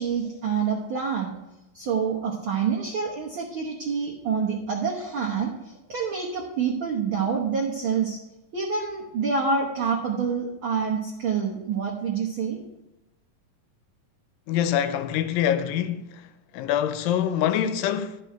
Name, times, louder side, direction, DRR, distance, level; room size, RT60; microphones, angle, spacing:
voice 1, 0.0-1.3 1.7-8.2 8.5-12.6, right 6 dB, 90° right, 1.1 m, -27 dB
voice 2, 14.5-16.1 16.5-18.2, left 10 dB, 85° left, 2.3 m, -25 dB
12.5 x 5.3 x 4.5 m
omnidirectional pair, 4.0 m